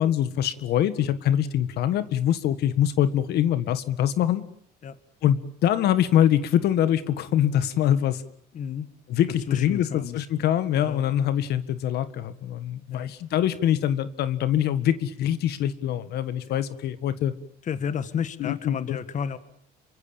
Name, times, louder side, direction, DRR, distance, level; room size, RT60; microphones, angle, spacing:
voice 1, 0.0-4.4 5.2-8.2 9.1-17.3 18.4-19.0, left 10 dB, 75° left, 12 dB, 1.8 m, -24 dB
voice 2, 8.5-8.9 9.5-10.2 10.8-11.0 12.9-13.2 16.5-16.6 17.6-19.4, left 7 dB, 45° left, 12 dB, 1.6 m, -32 dB
28.0 x 24.5 x 7.2 m, 0.64 s
cardioid pair, 110°, 17 cm